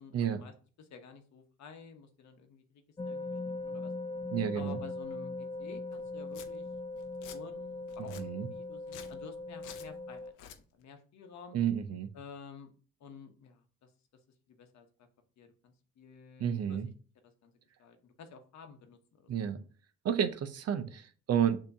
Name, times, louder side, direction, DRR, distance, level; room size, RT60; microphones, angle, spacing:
voice 1, 0.0-3.9 4.5-6.7 7.3-11.6 12.1-12.7 13.0-13.9 14.5-15.1 15.4-16.8 17.2-17.5 17.8-19.7, left 5 dB, 65° left, 6 dB, 0.9 m, -51 dB
sound 1, 3.0-10.3, left 2 dB, 15° left, 0.3 m, -40 dB
voice 2, 4.3-4.8 8.2-8.5 11.5-12.1 16.4-16.9 19.3-19.6 20.0-21.6, right 8 dB, 55° right, 9 dB, 0.6 m, -31 dB
Domestic sounds home sounds, 5.9-6.0 6.3-6.5 7.0-7.4 7.9-8.2 8.8-9.2 9.6-9.9 10.3-10.6, left 9 dB, 90° left, 0.6 m, -49 dB
6.8 x 2.9 x 2.7 m, 0.40 s
cardioid pair, 90°, 30 cm